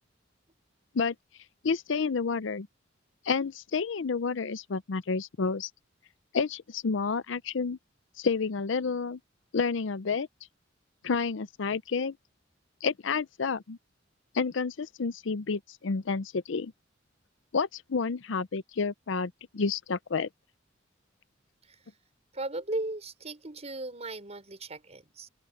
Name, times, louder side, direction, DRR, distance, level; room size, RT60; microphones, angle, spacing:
voice 1, 1.6-2.7 3.3-5.7 6.3-7.8 8.2-9.2 9.5-10.3 11.0-12.2 12.8-13.8 14.3-16.7 17.5-20.3, left 5 dB, 70° left, 0.6 m, -30 dB
voice 2, 22.3-25.3, right 2 dB, 35° right, 4.2 m, -36 dB
open air
head